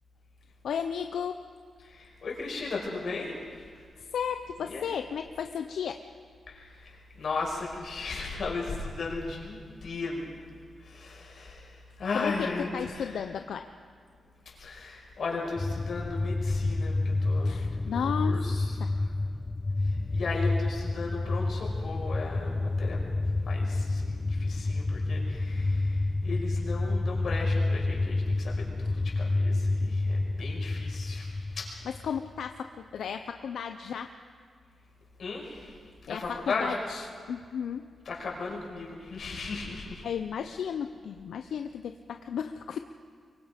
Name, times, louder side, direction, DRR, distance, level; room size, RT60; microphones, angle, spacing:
voice 1, 0.6-1.4 4.0-6.0 12.1-13.7 17.4-18.5 18.8-18.9 32.0-34.1 36.1-37.8 40.0-42.8, left 7 dB, 90° left, 7 dB, 0.7 m, -34 dB
voice 2, 1.8-3.7 4.6-4.9 6.5-10.3 10.8-13.2 14.6-19.0 19.8-31.7 35.2-35.8 36.0-36.8 38.1-40.0, left 3 dB, 60° left, -2 dB, 5.6 m, -36 dB
sound 1, 15.6-32.4, left 2 dB, 25° left, 0.6 m, -29 dB
24.5 x 23.5 x 5.2 m, 2.1 s
wide cardioid pair, 115°, 0 cm